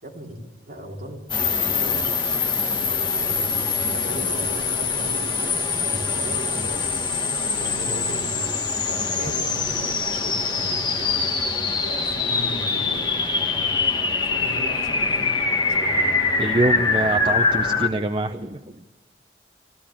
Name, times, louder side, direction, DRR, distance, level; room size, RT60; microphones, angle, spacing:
voice 1, 0.0-0.4 0.7-1.2 1.6-2.4 3.1-7.0 7.5-8.3 8.9-11.4 11.8-13.1 14.2-16.2, equal, 50° right, -2 dB, 3.7 m, -38 dB
sound 1, 1.3-17.9, left 4 dB, 25° left, 1.4 m, -24 dB
voice 2, 16.4-18.8, right 2 dB, 30° right, 8 dB, 0.6 m, -24 dB
21.0 x 15.0 x 8.8 m, 1.2 s
head